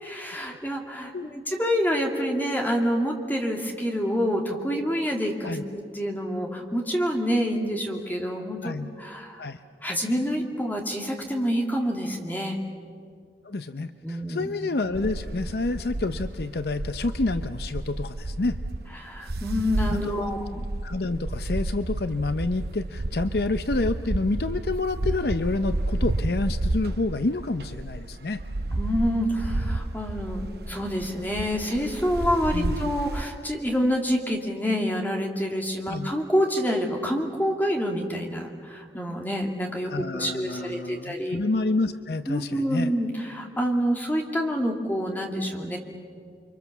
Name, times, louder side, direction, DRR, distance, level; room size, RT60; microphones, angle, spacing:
voice 1, 0.0-9.4 9.8-12.6 13.8-14.5 19.0-20.6 28.7-41.4 42.3-45.8, equal, 10° left, 1 dB, 2.4 m, -27 dB
voice 2, 13.4-18.6 19.9-20.4 20.8-28.4 32.5-32.8 35.9-36.1 39.9-42.9, left 3 dB, 60° left, 10 dB, 0.6 m, -28 dB
sound 1, 14.9-33.2, right 2 dB, 60° right, 0.8 m, -31 dB
29.5 x 24.0 x 7.2 m, 2.2 s
head